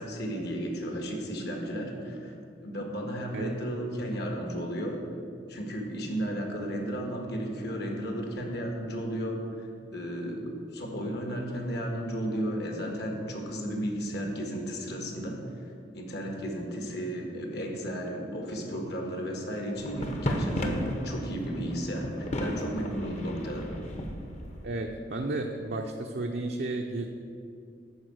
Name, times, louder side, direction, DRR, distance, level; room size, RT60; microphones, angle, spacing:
voice 1, 0.0-2.3 2.6-5.0 5.5-15.4 15.9-23.6, equal, 60° left, 1 dB, 1.7 m, -34 dB
sound 1, 19.7-24.7, equal, 40° left, 1.0 m, -34 dB
voice 2, 24.6-27.1, right 2 dB, 60° right, 2 dB, 0.6 m, -32 dB
11.0 x 4.8 x 7.7 m, 2.5 s
head